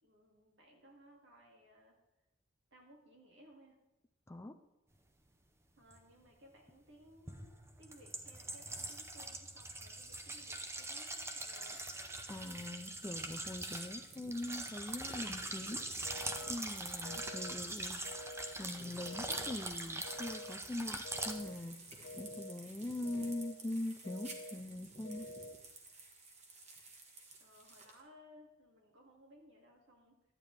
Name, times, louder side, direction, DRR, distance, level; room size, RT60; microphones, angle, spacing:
voice 1, 0.0-2.0 2.7-3.8 5.8-11.8 16.8-17.1 27.4-30.2, equal, 75° right, 0 dB, 2.3 m, -61 dB
voice 2, 4.3-4.6 12.3-15.9 16.5-18.0 18.6-21.8 22.2-25.3, left 1 dB, 15° left, 7 dB, 0.4 m, -42 dB
sound 1, 5.9-6.0 7.3-21.3, right 2 dB, 15° right, 0.7 m, -43 dB
sound 2, 11.5-28.0, right 2 dB, 35° right, 1.3 m, -55 dB
sound 3, 16.0-16.5 17.0-17.5 18.0-18.5 19.0-19.5 20.0-20.5 21.0-21.5 22.0-22.5 23.0-23.5 24.0-24.5 25.0-25.5, left 1 dB, 90° left, 0.7 m, -48 dB
11.5 x 8.9 x 3.3 m, 0.99 s
head